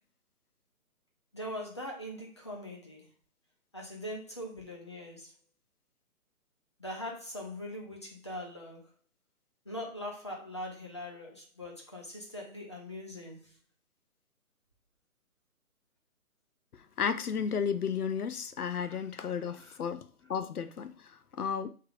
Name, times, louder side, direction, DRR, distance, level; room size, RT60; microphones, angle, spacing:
voice 1, 1.3-3.1 3.7-5.3 6.8-8.9 9.7-13.5 18.8-19.0 19.3-19.8, left 1 dB, 20° left, -1 dB, 0.5 m, -42 dB
voice 2, 17.0-21.7, left 7 dB, 80° left, 11 dB, 0.7 m, -33 dB
6.4 x 3.4 x 2.4 m, 0.38 s
figure-of-eight pair, 150°, 44 cm